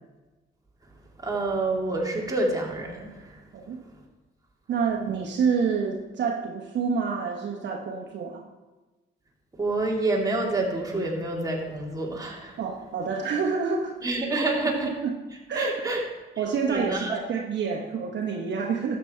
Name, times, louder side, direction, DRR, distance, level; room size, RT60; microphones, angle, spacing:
voice 1, 1.2-3.3 4.9-5.2 9.6-12.5 14.0-14.9 15.6-16.0 16.7-17.2, right 2 dB, 20° right, -2 dB, 2.7 m, -28 dB
voice 2, 4.7-8.5 12.6-14.0 14.3-15.2 15.5-15.7 16.4-19.0, right 5 dB, 65° right, 1 dB, 1.2 m, -28 dB
12.5 x 7.7 x 4.4 m, 1.2 s
cardioid pair, 90°, 20 cm